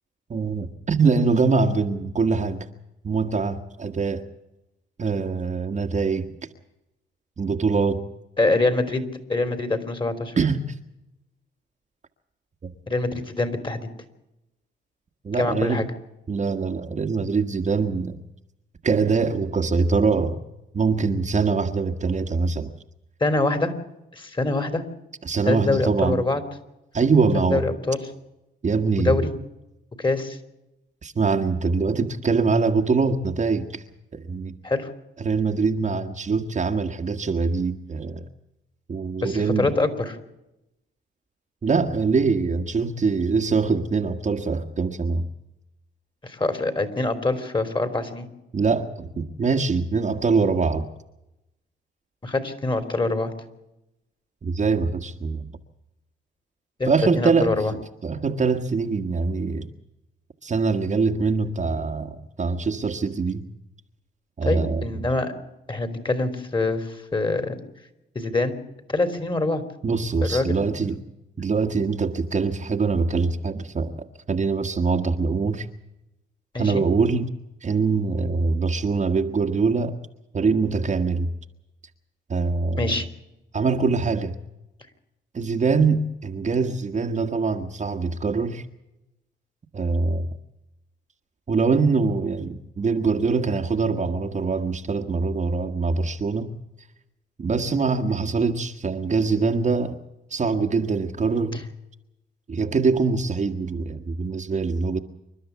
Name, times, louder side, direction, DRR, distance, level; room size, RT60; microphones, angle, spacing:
voice 1, 0.3-2.7 3.0-4.2 5.0-6.3 7.4-8.0 10.4-10.8 12.6-12.7 15.2-15.8 16.3-18.2 18.8-20.4 20.7-22.7 25.2-26.2 26.9-27.7 28.6-29.3 31.0-33.8 34.1-34.6 35.2-38.3 38.9-39.7 41.6-45.3 48.5-50.9 54.4-55.5 56.9-57.5 58.0-59.7 60.4-63.5 64.4-64.8 69.8-71.0 71.4-73.9 74.3-75.7 76.6-77.3 77.6-80.0 80.3-81.3 82.3-83.0 83.5-84.4 85.3-88.6 89.7-90.3 91.5-96.5 97.4-100.0 100.3-101.7 102.5-105.0, right 4 dB, 35° right, 1.5 m, -23 dB
voice 2, 8.4-9.0 9.3-10.3 12.9-13.9 15.3-15.9 23.2-23.7 24.1-24.8 25.4-26.4 27.3-28.0 29.0-29.3 30.0-30.4 34.6-34.9 39.2-40.2 46.2-48.3 52.2-53.3 56.8-57.7 64.4-65.3 65.7-67.6 68.1-68.5 68.9-69.6 70.3-71.0 76.5-76.8 82.8-83.1, left 2 dB, 25° left, 3.4 m, -24 dB
27.5 x 12.5 x 8.2 m
cardioid pair, 90°, 20 cm